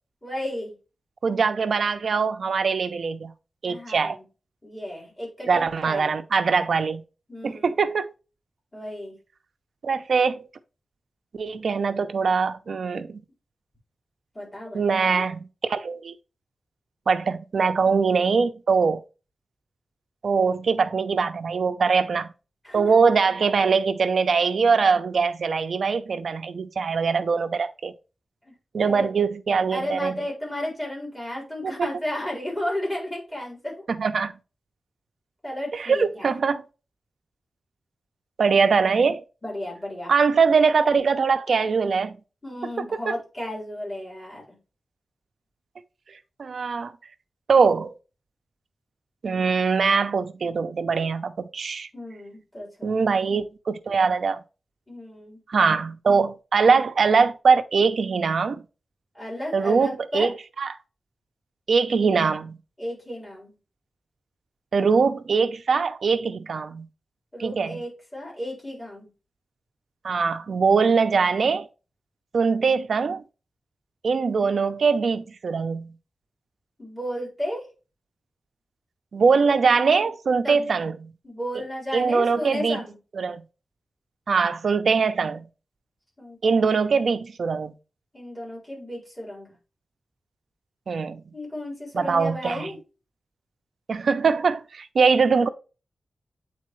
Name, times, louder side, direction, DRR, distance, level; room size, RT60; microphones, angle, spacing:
voice 1, 0.2-0.7 3.7-4.2 4.6-6.2 7.3-7.9 8.7-9.2 14.3-15.3 22.6-22.9 28.4-29.1 29.7-33.8 35.4-36.3 39.4-40.1 42.4-44.6 51.9-53.0 54.9-55.4 59.1-60.3 62.8-63.5 67.3-69.1 76.8-77.6 80.4-80.7 81.2-83.0 86.2-86.6 88.1-89.5 91.3-92.8, left 1 dB, 10° left, 4.1 m, -33 dB
voice 2, 1.2-3.3 3.6-4.2 5.5-7.0 7.4-8.1 9.8-10.5 11.3-13.2 14.7-15.4 15.7-16.1 17.1-19.0 20.2-22.3 22.7-27.9 28.7-30.2 31.6-31.9 33.9-34.3 35.7-36.6 38.4-39.2 40.1-42.2 46.4-46.9 47.5-47.9 49.2-51.9 52.8-54.4 55.5-58.6 59.5-60.7 61.7-62.6 64.7-66.9 67.4-67.8 70.0-71.7 72.3-73.2 74.0-75.9 79.1-81.1 81.9-82.8 83.2-83.4 84.3-85.5 86.4-87.7 90.9-91.2 91.9-92.7 93.9-95.5, right 5 dB, 65° right, 0.5 m, -22 dB
8.5 x 4.1 x 3.1 m
wide cardioid pair, 180°, 0 cm